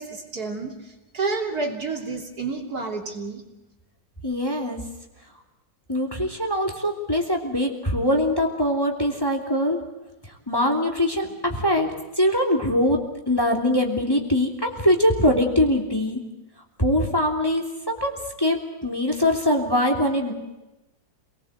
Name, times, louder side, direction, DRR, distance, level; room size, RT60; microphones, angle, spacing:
voice 1, 0.0-3.5, right 4 dB, 55° right, 2 dB, 3.6 m, -30 dB
voice 2, 4.2-4.8 5.9-9.8 10.5-11.9 12.2-16.2 16.8-18.1 18.4-20.3, left 1 dB, 10° left, 1 dB, 3.1 m, -22 dB
27.5 x 19.5 x 8.2 m, 1.0 s
omnidirectional pair, 2.0 m